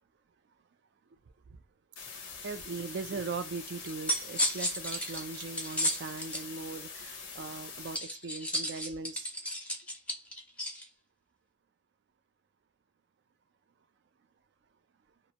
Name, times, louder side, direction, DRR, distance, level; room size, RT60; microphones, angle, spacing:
sound 1, 2.0-8.0, left 5 dB, 90° left, 0.8 m, -44 dB
voice 1, 2.4-9.3, right 4 dB, 60° right, 0.4 m, -40 dB
sound 2, 3.8-6.4 7.9-10.8, equal, 5° left, 0.5 m, -33 dB
2.5 x 2.1 x 2.8 m
head